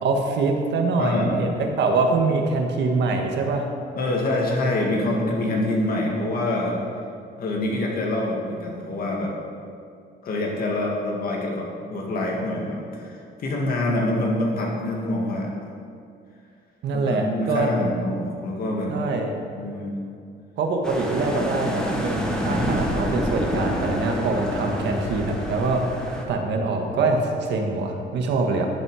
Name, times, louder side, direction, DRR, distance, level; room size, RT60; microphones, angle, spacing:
voice 1, 0.0-3.7 16.8-17.7 18.9-19.3 20.6-28.7, right 3 dB, 70° right, 3 dB, 1.6 m, -24 dB
voice 2, 1.0-1.4 4.0-6.7 7.4-9.3 10.2-11.6 11.9-15.5 16.9-18.9 19.5-19.9, left 1 dB, 50° left, -1 dB, 2.2 m, -25 dB
sound 1, 20.8-26.2, equal, 5° left, 1.3 m, -27 dB
11.0 x 11.0 x 4.9 m, 2.4 s
cardioid pair, 170°, 19 cm